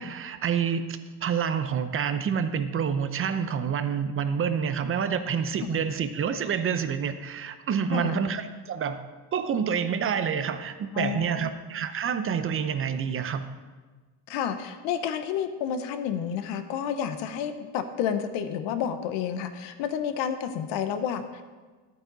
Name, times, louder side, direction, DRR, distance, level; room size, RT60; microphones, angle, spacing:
voice 1, 0.0-9.0 9.3-13.5, right 7 dB, 30° right, 10 dB, 0.6 m, -28 dB
voice 2, 10.9-11.5 14.3-21.4, left 8 dB, 70° left, 9 dB, 1.0 m, -30 dB
11.5 x 9.0 x 4.0 m, 1.4 s
cardioid pair, 125°, 45 cm